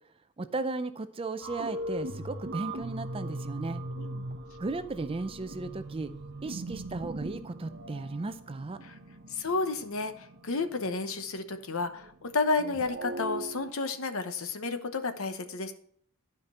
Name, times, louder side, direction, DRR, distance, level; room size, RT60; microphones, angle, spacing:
voice 1, 0.4-3.8 4.6-6.1 6.4-8.8, right 3 dB, 25° right, 11 dB, 0.5 m, -35 dB
sound 1, 1.4-12.3 12.6-13.7, right 1 dB, 50° right, 1.0 m, -40 dB
voice 2, 9.3-15.7, left 3 dB, 65° left, 9 dB, 0.9 m, -31 dB
12.0 x 5.2 x 4.2 m, 0.63 s
head